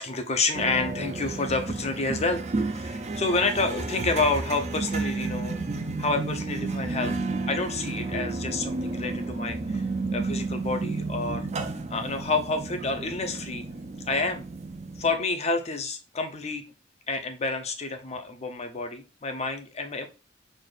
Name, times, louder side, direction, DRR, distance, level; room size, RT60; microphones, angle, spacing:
voice 1, 0.0-5.6 6.0-7.2 7.5-9.9 10.1-13.6 14.0-14.4 15.0-16.6 17.1-20.1, left 3 dB, 35° left, 7 dB, 0.6 m, -29 dB
sound 1, 0.5-15.2, right 3 dB, 35° right, 0.4 m, -32 dB
4.1 x 2.4 x 3.3 m, 0.32 s
head